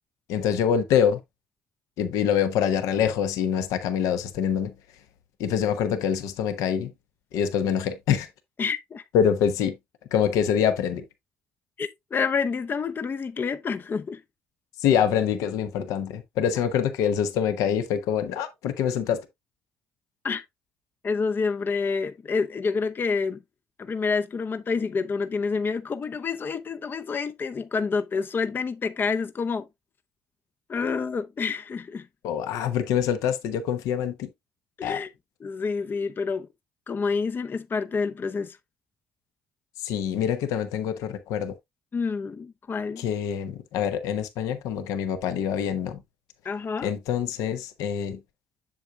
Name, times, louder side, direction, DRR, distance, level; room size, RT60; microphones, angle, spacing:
voice 1, 0.3-1.2 2.0-4.7 5.4-6.9 7.3-8.3 9.1-9.8 10.1-11.0 14.8-19.3 32.2-34.3 34.8-35.0 39.8-41.5 43.0-46.0 46.8-48.2, left 8 dB, 75° left, 1.0 m, -25 dB
voice 2, 8.6-9.0 11.8-14.2 20.2-20.4 21.0-23.4 23.8-29.7 30.7-32.1 34.8-35.1 35.4-36.5 36.9-38.6 41.9-43.0 46.4-46.9, left 5 dB, 35° left, 0.6 m, -28 dB
7.6 x 6.9 x 2.3 m
supercardioid pair, 65°, 6 cm